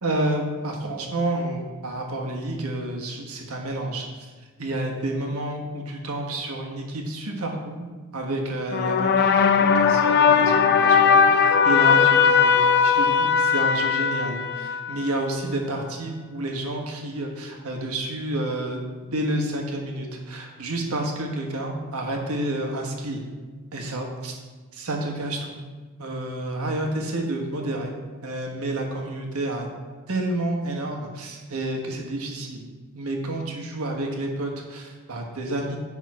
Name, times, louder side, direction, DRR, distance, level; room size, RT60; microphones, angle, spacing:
voice 1, 0.0-4.1 4.6-7.9 8.1-12.6 12.8-23.2 23.7-24.3 24.7-25.6 26.0-27.9 28.2-29.7 30.1-32.6 32.9-35.8, right 1 dB, 75° right, 1 dB, 1.3 m, -29 dB
sound 1, 8.7-15.1, left 6 dB, 50° left, 0.4 m, -19 dB
10.5 x 3.6 x 4.8 m, 1.3 s
head